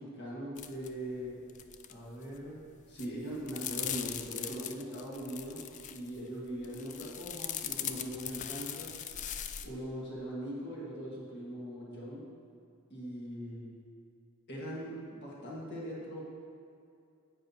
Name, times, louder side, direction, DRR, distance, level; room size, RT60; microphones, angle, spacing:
voice 1, 0.0-1.4 1.9-8.9 9.6-12.3 12.9-13.7 14.5-16.3, equal, 55° left, -5 dB, 1.6 m, -41 dB
sound 1, 0.6-1.9 2.2-2.6 3.0-6.2 6.6-9.7, left 9 dB, 35° left, 0.3 m, -40 dB
9.7 x 8.8 x 2.8 m, 2.5 s
head